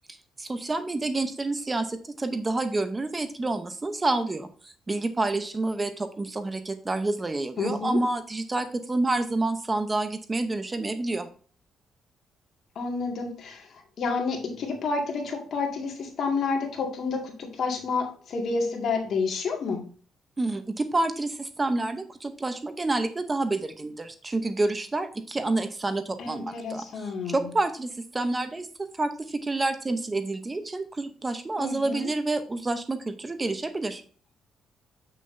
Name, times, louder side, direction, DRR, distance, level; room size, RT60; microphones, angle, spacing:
voice 1, 0.4-11.3 20.4-34.0, right 2 dB, 25° right, 9 dB, 0.8 m, -28 dB
voice 2, 7.6-8.0 12.8-19.9 26.2-27.5 31.6-32.1, left 4 dB, 60° left, 2 dB, 2.1 m, -30 dB
7.6 x 6.5 x 2.7 m, 0.42 s
cardioid pair, 90°, 0 cm